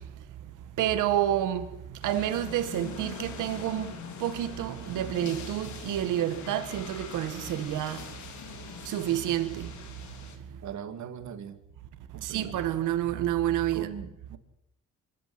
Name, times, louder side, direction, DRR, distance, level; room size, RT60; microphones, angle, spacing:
voice 1, 0.8-1.7 2.0-3.9 4.2-8.0 8.9-9.7 12.2-13.9, right 12 dB, 85° right, 1.9 m, -29 dB
sound 1, 2.0-10.4, left 7 dB, 70° left, 3.5 m, -43 dB
voice 2, 10.6-11.6 12.1-12.5 13.7-14.4, right 8 dB, 70° right, 2.4 m, -40 dB
24.5 x 12.0 x 9.6 m
cardioid pair, 90°, 30 cm